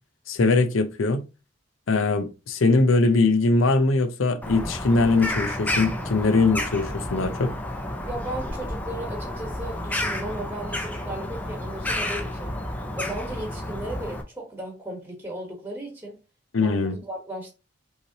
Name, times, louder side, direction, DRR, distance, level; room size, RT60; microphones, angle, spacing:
voice 1, 0.3-1.3 1.9-7.5 16.5-17.0, left 3 dB, 80° left, 0.6 m, -21 dB
Bird vocalization bird call bird song, 4.4-14.2, left 1 dB, 10° left, 0.5 m, -31 dB
voice 2, 8.0-12.5 13.0-16.2 16.6-17.5, right 1 dB, 10° right, 1.2 m, -35 dB
5.5 x 3.1 x 2.8 m
head